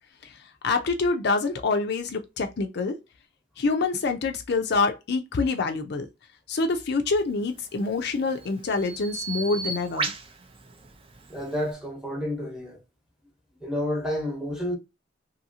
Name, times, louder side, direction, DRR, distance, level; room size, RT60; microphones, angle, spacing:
voice 1, 0.2-3.0 3.6-6.1 6.5-10.1, left 3 dB, 65° left, 0.5 m, -26 dB
Bird vocalization bird call bird song, 7.5-11.7, right 4 dB, 30° right, 0.5 m, -36 dB
voice 2, 11.3-12.8 13.6-14.8, left 1 dB, 5° right, 0.9 m, -30 dB
2.8 x 2.7 x 2.7 m
head